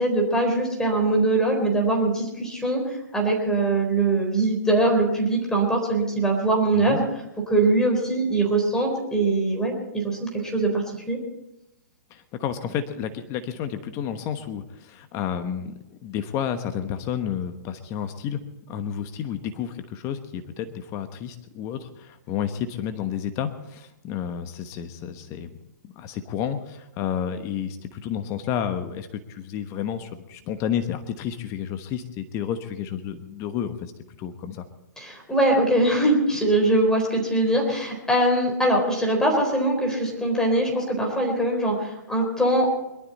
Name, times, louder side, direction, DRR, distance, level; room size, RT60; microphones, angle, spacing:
voice 1, 0.0-7.0 7.5-11.2 35.0-42.7, right 2 dB, 5° left, 1 dB, 4.0 m, -22 dB
voice 2, 12.1-25.5 25.8-33.9 34.2-34.6, left 9 dB, 30° left, 9 dB, 1.1 m, -31 dB
22.0 x 12.5 x 4.2 m, 0.89 s
hypercardioid pair, 135°, 10 cm